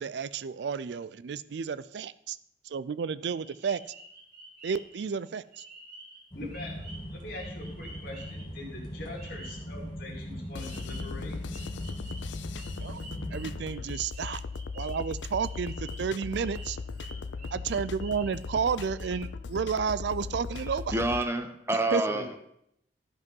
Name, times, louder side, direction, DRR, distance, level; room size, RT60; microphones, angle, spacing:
voice 1, 0.0-2.4 2.7-3.8 4.6-5.6 12.7-13.0 13.3-14.4 14.7-16.8 17.5-21.0 21.9-22.0, right 6 dB, 70° right, 17 dB, 0.4 m, -31 dB
sound 1, 3.3-5.0 5.5-6.2 6.5-8.5 9.2-9.7 10.6-11.2 11.5-16.1 16.4-18.7 19.0-19.2, right 2 dB, 45° right, 2.9 m, -49 dB
voice 2, 6.3-11.3 22.1-22.4, left 2 dB, 50° left, -4 dB, 2.5 m, -42 dB
sound 2, 6.3-13.6, equal, 25° left, 1.7 m, -40 dB
sound 3, 10.5-21.2, left 4 dB, 75° left, 0.4 m, -38 dB
voice 3, 20.9-22.4, right 2 dB, 15° right, 8 dB, 0.7 m, -28 dB
12.0 x 5.3 x 5.4 m, 0.74 s
head